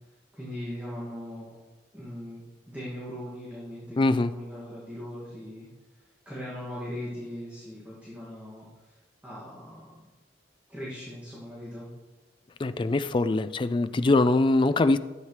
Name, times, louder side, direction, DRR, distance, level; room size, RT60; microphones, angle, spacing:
voice 1, 0.3-1.4 1.9-5.7 6.3-9.0 9.2-10.0 10.7-11.9 13.9-14.2, equal, 10° right, -9 dB, 2.2 m, -39 dB
voice 2, 4.0-4.3 12.6-15.0, left 2 dB, 25° left, 12 dB, 0.3 m, -23 dB
12.0 x 8.8 x 3.3 m, 1.2 s
head